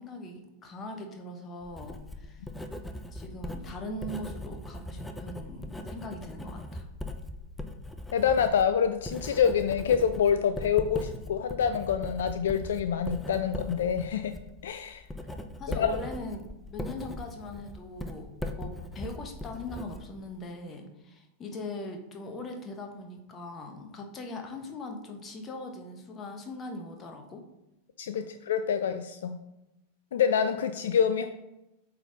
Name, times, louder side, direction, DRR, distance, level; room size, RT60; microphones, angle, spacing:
voice 1, 0.0-2.4 3.1-6.9 15.6-16.4 16.7-18.3 18.6-27.4 28.1-28.3, left 2 dB, 25° left, 4 dB, 1.2 m, -40 dB
Writing, 1.6-20.5, left 1 dB, 5° left, 0.6 m, -40 dB
voice 2, 8.1-14.3 14.6-15.0 15.7-16.0 28.0-29.4 30.1-31.3, left 7 dB, 60° left, 9 dB, 0.4 m, -26 dB
8.0 x 4.1 x 4.0 m, 0.93 s
figure-of-eight pair, 90°, 0 cm